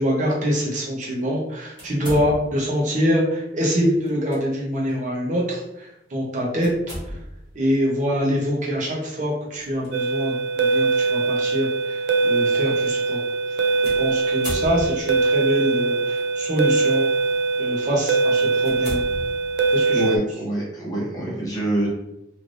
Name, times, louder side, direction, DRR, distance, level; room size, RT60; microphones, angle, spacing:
voice 1, 0.0-6.7 7.5-13.2 14.0-17.1 17.6-19.0 19.7-20.0, equal, 40° right, -3 dB, 0.6 m, -24 dB
sound 1, 1.8-2.8 4.0-4.4 4.9-5.0 6.6-7.5 9.6-9.9 10.7-10.8 13.8-15.2 16.1-16.6 17.2-17.4 17.9-18.0 18.6-19.8, equal, 25° right, 1.2 m, -35 dB
sound 2, 9.9-20.2, right 3 dB, 75° right, 0.3 m, -22 dB
voice 2, 19.9-21.9, right 1 dB, 20° left, -5 dB, 0.7 m, -25 dB
3.1 x 2.6 x 2.5 m, 0.85 s
head